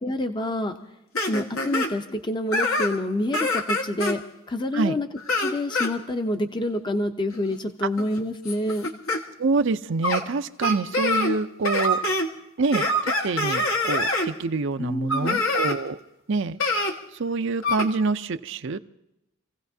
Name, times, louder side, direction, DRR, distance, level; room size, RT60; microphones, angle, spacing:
voice 1, 0.0-0.8 1.3-4.2 4.5-5.1 5.4-8.9 14.8-15.4, left 1 dB, 20° left, 7 dB, 0.6 m, -27 dB
sound 1, 1.2-1.9 2.5-3.0 3.3-4.2 5.2-5.9 7.3-7.5 8.0-9.2 10.0-10.2 10.6-11.4 11.6-12.3 12.7-14.3 15.1-15.8 16.6-16.9 17.6-17.9, left 1 dB, 80° left, 1.6 m, -25 dB
voice 2, 9.4-12.0 12.6-16.0 16.3-16.6 17.1-18.8, right 4 dB, 60° right, 10 dB, 0.5 m, -26 dB
27.5 x 16.0 x 2.7 m, 0.89 s
head